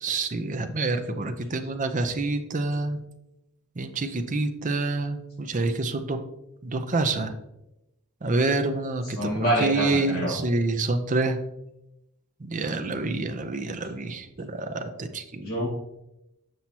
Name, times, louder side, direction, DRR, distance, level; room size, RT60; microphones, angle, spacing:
voice 1, 0.0-3.0 3.8-6.2 6.6-7.3 8.2-11.4 12.4-15.5, right 3 dB, 35° right, 7 dB, 0.6 m, -27 dB
voice 2, 9.0-10.3 15.4-15.7, equal, 50° left, -5 dB, 2.3 m, -26 dB
7.7 x 5.7 x 2.9 m, 0.89 s
head